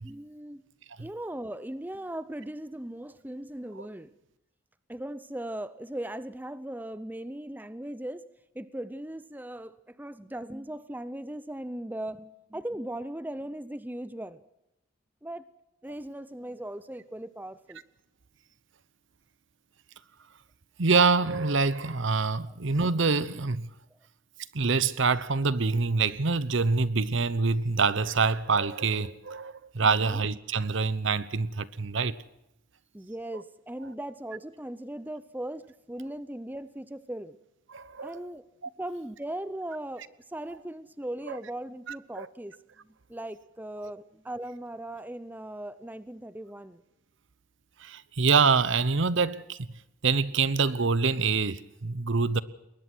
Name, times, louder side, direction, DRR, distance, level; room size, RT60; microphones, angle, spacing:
voice 1, 0.0-0.6 1.0-4.1 4.9-8.2 8.5-14.4 15.2-15.4 15.8-17.8 22.4-22.5 29.8-30.3 32.9-35.6 35.9-37.4 38.0-38.4 38.8-40.0 40.3-42.5 43.1-46.8, right 1 dB, 10° right, 0.6 m, -38 dB
voice 2, 20.8-23.7 24.5-32.1 37.7-38.1 41.3-41.4 41.9-42.3 47.8-49.6 50.0-52.4, right 4 dB, 65° right, 0.9 m, -25 dB
21.5 x 19.5 x 6.1 m
head